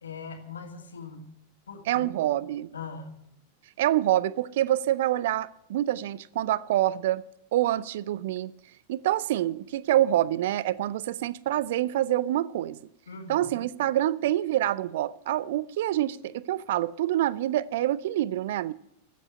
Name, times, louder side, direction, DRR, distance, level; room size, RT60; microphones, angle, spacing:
voice 1, 0.0-1.3 1.7-2.1 2.7-3.1 13.1-13.5, left 5 dB, 70° left, 2.3 m, -40 dB
voice 2, 1.9-2.7 3.8-7.2 7.5-8.5 8.9-12.8 13.3-18.7, right 13 dB, 55° right, 0.4 m, -26 dB
13.5 x 8.4 x 9.6 m
figure-of-eight pair, 90°, 0 cm